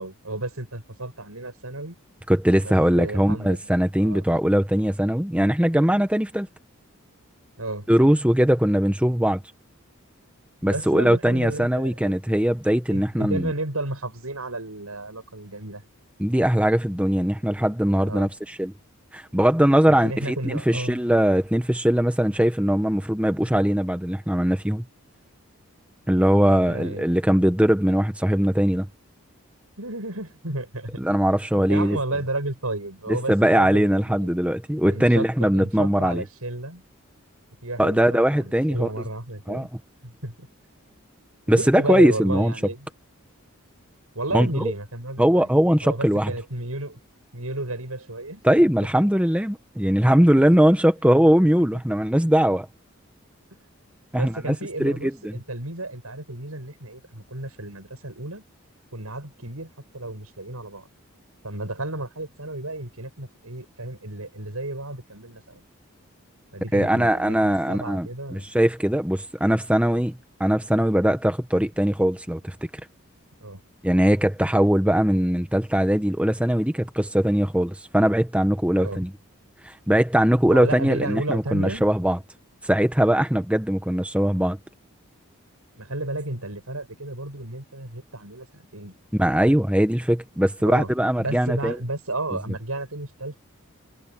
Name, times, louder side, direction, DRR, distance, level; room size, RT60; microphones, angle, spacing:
voice 1, 0.0-2.0 2.6-3.6 4.0-4.2 7.6-7.9 10.6-12.1 12.9-15.8 17.9-18.3 19.9-21.0 26.6-27.0 29.8-31.0 31.5-34.4 34.9-36.8 37.6-39.7 40.0-40.5 41.5-42.9 44.1-45.5 45.8-47.0 47.3-48.7 54.1-58.4 58.9-60.9 61.4-65.6 66.5-68.5 73.4-73.6 78.8-79.0 80.4-81.8 85.8-88.9 90.7-90.9 91.2-93.4, right 2 dB, 85° right, 7.9 m, -32 dB
voice 2, 2.3-6.5 7.9-9.4 10.6-13.5 16.2-18.7 19.1-24.8 26.1-28.9 31.0-32.0 33.3-36.2 37.8-38.9 39.5-39.7 41.5-42.5 44.3-44.7 45.2-46.3 48.4-52.7 54.1-55.4 66.7-72.5 73.8-79.1 79.6-82.2 82.6-84.6 89.2-91.8, equal, 5° right, 1.0 m, -21 dB
head